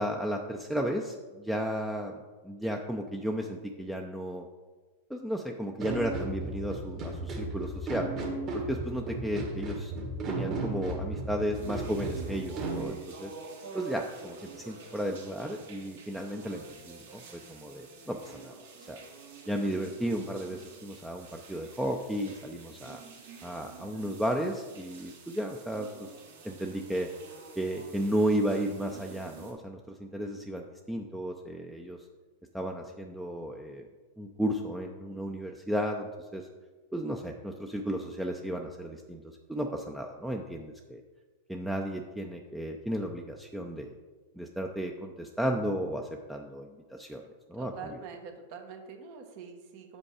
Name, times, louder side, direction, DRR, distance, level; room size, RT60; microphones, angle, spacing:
voice 1, 0.0-2.2 2.4-4.5 5.1-8.1 8.7-9.9 10.3-13.3 13.7-19.0 19.5-23.0 23.4-26.1 26.4-27.1 27.6-32.0 32.5-33.9 34.2-36.5 36.9-41.0 41.5-44.0 44.4-47.2 47.5-47.9, equal, 5° right, 2 dB, 0.6 m, -34 dB
sound 1, 5.8-12.8, right 2 dB, 40° right, 1.8 m, -35 dB
sound 2, 11.5-29.5, right 5 dB, 75° right, 2.2 m, -48 dB
voice 2, 47.6-50.0, right 5 dB, 55° right, 4 dB, 1.3 m, -44 dB
7.1 x 5.2 x 4.9 m, 1.3 s
hypercardioid pair, 110°, 0 cm